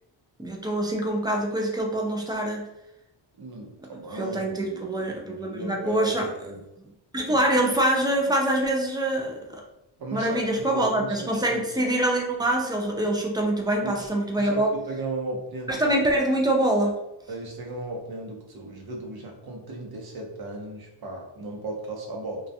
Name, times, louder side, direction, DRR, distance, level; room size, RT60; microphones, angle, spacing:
voice 1, 0.4-2.7 4.1-6.3 7.1-9.6 10.1-14.7 15.7-16.9, right 1 dB, 10° right, 0 dB, 0.3 m, -25 dB
voice 2, 3.4-6.6 7.3-7.4 10.0-11.7 13.8-14.1 14.4-15.8 17.3-22.5, right 2 dB, 50° right, 0 dB, 0.8 m, -36 dB
2.3 x 2.2 x 2.7 m, 0.87 s
cardioid pair, 90°, 50 cm